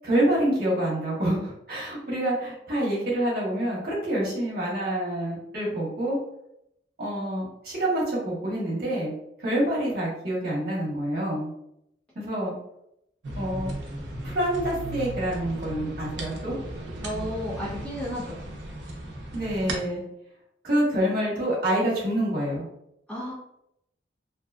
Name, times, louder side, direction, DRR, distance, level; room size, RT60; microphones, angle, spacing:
voice 1, 0.0-6.2 7.0-9.1 9.4-11.5 12.1-12.5 13.4-13.7 14.2-16.6 19.3-20.0 20.6-22.6, right 1 dB, 55° right, -5 dB, 1.0 m, -27 dB
sound 1, 13.2-19.8, right 1 dB, 90° right, 0.6 m, -36 dB
voice 2, 17.0-18.4 23.1-23.3, equal, 5° left, -7 dB, 0.7 m, -32 dB
2.7 x 2.2 x 2.3 m, 0.78 s
head